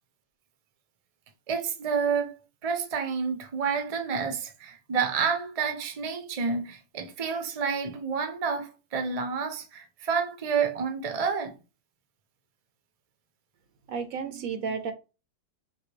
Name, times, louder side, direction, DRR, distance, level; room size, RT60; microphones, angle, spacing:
voice 1, 1.5-2.3 2.6-11.5, right 6 dB, 40° right, 0.5 m, -29 dB
voice 2, 13.9-14.9, right 6 dB, 65° right, 1.0 m, -32 dB
5.6 x 2.2 x 3.3 m
omnidirectional pair, 1.7 m